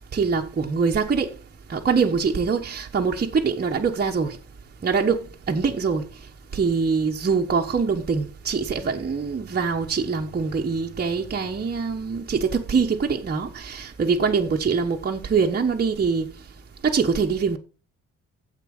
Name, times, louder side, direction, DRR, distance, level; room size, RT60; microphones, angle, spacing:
voice 1, 0.1-1.3 1.7-4.4 4.8-6.0 6.5-16.3 16.8-17.6, right 5 dB, 30° right, 1.2 m, -23 dB
9.2 x 7.7 x 4.9 m
cardioid pair, 90°, 30 cm